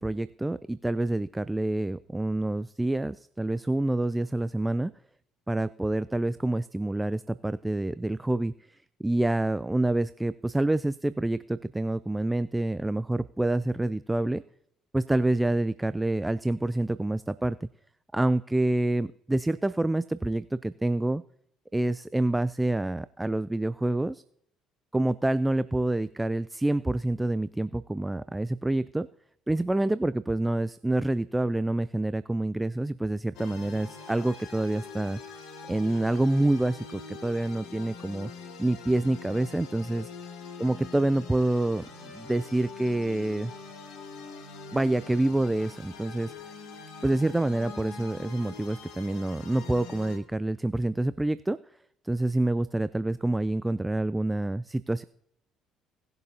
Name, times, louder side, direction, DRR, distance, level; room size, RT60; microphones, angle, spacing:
voice 1, 0.0-4.9 5.5-14.4 14.9-17.7 18.1-21.2 21.7-24.2 24.9-29.1 29.5-35.2 35.7-38.3 38.6-40.1 40.6-43.5 44.7-46.3 47.0-51.6 52.0-55.0, right 1 dB, 10° right, 16 dB, 0.3 m, -27 dB
sound 1, 33.3-50.2, left 5 dB, 70° left, 2.0 m, -44 dB
18.5 x 6.7 x 2.8 m, 0.68 s
hypercardioid pair, 60°, 0 cm